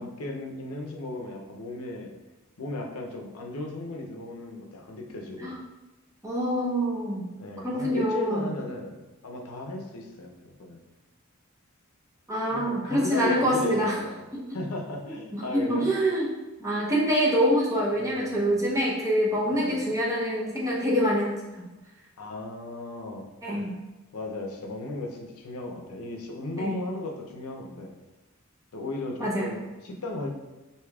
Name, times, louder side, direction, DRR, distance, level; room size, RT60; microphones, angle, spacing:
voice 1, 0.0-2.1 2.6-5.6 7.4-8.9 9.2-10.8 12.5-14.2 14.5-15.9 17.9-18.6 19.4-19.9 22.2-23.7 24.1-27.9 28.7-30.3, left 2 dB, 85° left, 1 dB, 0.6 m, -36 dB
voice 2, 6.2-7.3 7.6-8.5 12.3-14.0 14.3-14.4 15.3-16.3 16.6-21.6 23.4-23.8 26.6-26.8 29.2-29.5, equal, 15° right, -5 dB, 0.7 m, -25 dB
4.8 x 2.7 x 2.3 m, 1.1 s
head